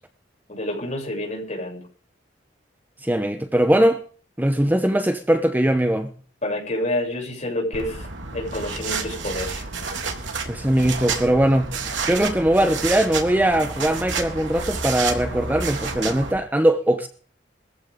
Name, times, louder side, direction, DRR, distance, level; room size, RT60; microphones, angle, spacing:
voice 1, 0.5-1.8 6.4-8.1 8.3-9.6, left 1 dB, 40° left, 8.0 m, -28 dB
voice 2, 3.0-4.0 4.4-6.1 10.4-11.8 12.1-17.1, right 1 dB, 10° right, 1.1 m, -20 dB
sound 1, 7.7-16.3, right 4 dB, 80° right, 3.4 m, -30 dB
21.5 x 15.0 x 3.9 m
head